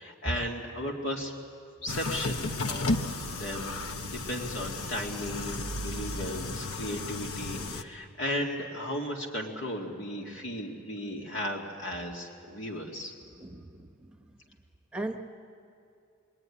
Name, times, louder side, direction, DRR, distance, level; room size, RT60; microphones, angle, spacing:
voice 1, 0.0-1.3 1.8-13.1, equal, 60° left, 0 dB, 2.4 m, -36 dB
sound 1, 1.9-7.8, left 2 dB, 85° left, 1.1 m, -34 dB
voice 2, 7.5-7.9 13.4-14.1 14.9-15.3, right 2 dB, 5° right, 3 dB, 1.2 m, -39 dB
24.0 x 22.5 x 9.9 m, 2.4 s
head